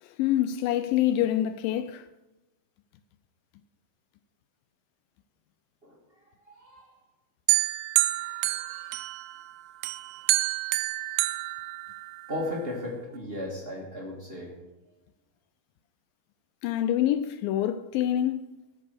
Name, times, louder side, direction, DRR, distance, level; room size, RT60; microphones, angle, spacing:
voice 1, 0.2-2.1 16.6-18.6, left 12 dB, 80° left, 2.1 m, -26 dB
voice 2, 6.5-6.9 8.0-9.0 10.1-10.3 12.3-14.5, left 1 dB, 45° right, 0.7 m, -37 dB
sound 1, 7.5-9.4 9.8-12.4, right 17 dB, 85° right, 1.9 m, -28 dB
13.0 x 5.4 x 6.6 m
omnidirectional pair, 4.4 m